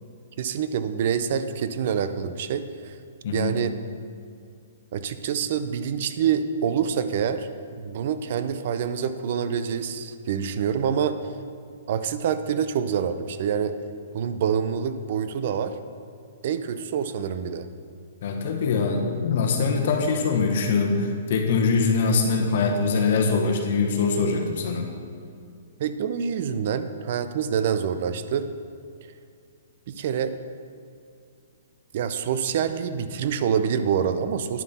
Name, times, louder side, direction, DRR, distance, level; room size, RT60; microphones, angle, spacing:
voice 1, 0.4-3.0 3.3-3.8 4.9-7.5 7.8-11.2 11.9-13.7 14.1-15.8 16.4-17.7 25.8-28.5 29.9-30.3 31.9-34.6, right 7 dB, 55° right, 11 dB, 0.5 m, -26 dB
voice 2, 18.2-24.9, left 4 dB, 60° left, 2 dB, 1.1 m, -23 dB
9.5 x 5.4 x 4.1 m, 2.3 s
hypercardioid pair, 145°, 0 cm